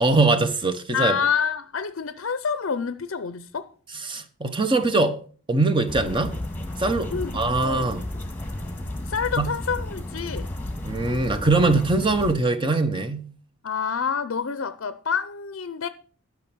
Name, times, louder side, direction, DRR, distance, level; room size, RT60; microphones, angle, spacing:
voice 1, 0.0-1.2 4.1-5.2 5.5-6.3 6.8-8.0 9.4-9.5 10.8-13.3, right 3 dB, 25° right, 1.0 m, -22 dB
voice 2, 0.9-3.7 7.0-7.9 9.0-10.5 13.6-15.9, left 6 dB, 60° left, 0.6 m, -28 dB
sound 1, 5.9-12.3, left 1 dB, 10° left, 1.9 m, -33 dB
12.5 x 6.2 x 6.1 m
head